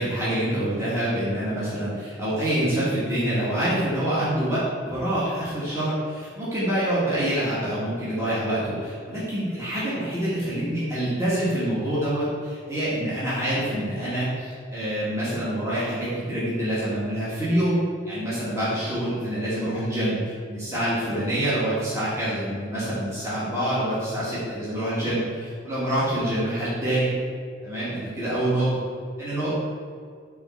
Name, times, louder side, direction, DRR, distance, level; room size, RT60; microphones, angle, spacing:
voice 1, 0.0-17.8 18.1-27.1 27.6-28.7 29.2-29.5, right 1 dB, 15° right, -11 dB, 1.8 m, -26 dB
5.6 x 4.1 x 5.6 m, 2.1 s
head